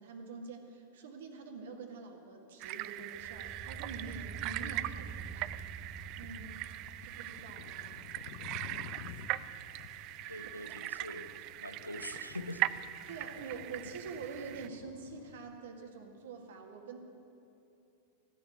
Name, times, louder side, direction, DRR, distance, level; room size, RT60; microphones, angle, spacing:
voice 1, 0.0-5.5 6.2-6.6 7.1-8.2 13.1-17.0, right 4 dB, 60° right, 3 dB, 1.7 m, -46 dB
sound 1, 2.6-14.7, right 16 dB, 40° right, 0.3 m, -40 dB
sound 2, 3.1-8.4, right 5 dB, 25° right, 1.0 m, -47 dB
sound 3, 5.2-15.6, left 8 dB, 50° left, 0.7 m, -53 dB
voice 2, 10.3-12.6, left 1 dB, 85° left, 9 dB, 0.7 m, -44 dB
15.5 x 6.9 x 9.8 m, 2.7 s
figure-of-eight pair, 90°, 0 cm